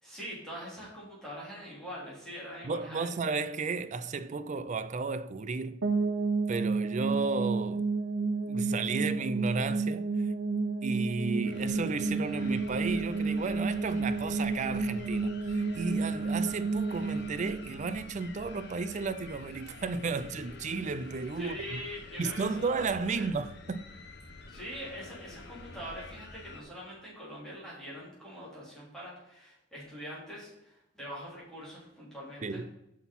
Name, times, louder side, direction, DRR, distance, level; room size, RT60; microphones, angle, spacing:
voice 1, 0.0-3.1 21.4-22.8 23.1-23.2 24.5-32.6, equal, 5° left, 3.5 m, -43 dB
voice 2, 2.6-5.8 6.5-7.9 8.5-10.3 10.8-21.8 22.2-23.8 32.4-32.7, right 4 dB, 40° right, 0.4 m, -33 dB
sound 1, 5.8-18.7, right 3 dB, 85° right, 1.0 m, -31 dB
sound 2, 11.4-26.6, left 2 dB, 60° left, 1.0 m, -48 dB
6.3 x 5.8 x 5.5 m
head